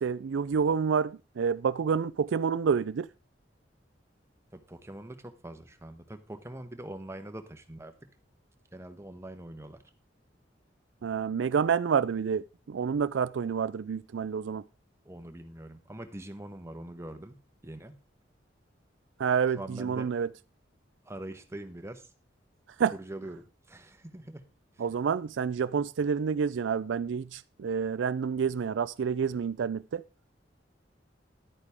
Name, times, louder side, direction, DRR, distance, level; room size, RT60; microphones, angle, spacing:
voice 1, 0.0-3.1 11.0-14.6 19.2-20.3 22.8-22.9 24.8-30.0, right 6 dB, 85° right, 0.4 m, -28 dB
voice 2, 4.5-7.9 8.7-9.8 15.0-18.0 19.6-20.1 21.0-22.1 22.9-24.4 24.7-24.8, right 1 dB, 15° right, 1.1 m, -43 dB
11.5 x 8.9 x 3.5 m
head